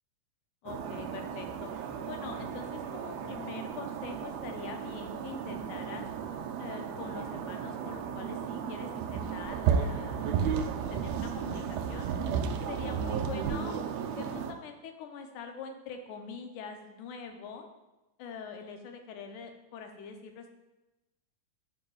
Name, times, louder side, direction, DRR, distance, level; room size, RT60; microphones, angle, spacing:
voice 1, 0.6-1.7 2.1-6.1 6.6-10.6 10.9-12.1 12.7-13.8 14.2-17.7 18.2-20.5, left 5 dB, 85° left, 5 dB, 2.1 m, -44 dB
sound 1, 0.7-14.5, right 7 dB, 85° right, 1.4 m, -34 dB
9.7 x 5.2 x 2.3 m, 1.0 s
omnidirectional pair, 3.5 m